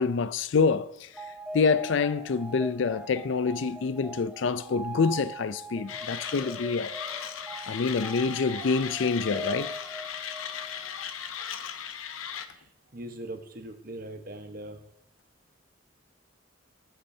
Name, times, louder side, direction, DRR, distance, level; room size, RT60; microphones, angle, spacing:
voice 1, 0.0-7.0 7.7-9.8, left 5 dB, 65° left, 0.4 m, -27 dB
sound 1, 1.1-10.9, right 1 dB, 5° right, 0.6 m, -42 dB
Mechanisms, 5.9-12.5, left 8 dB, 85° left, 0.8 m, -37 dB
voice 2, 12.9-14.8, right 1 dB, 45° right, 1.1 m, -40 dB
19.0 x 8.5 x 2.8 m
head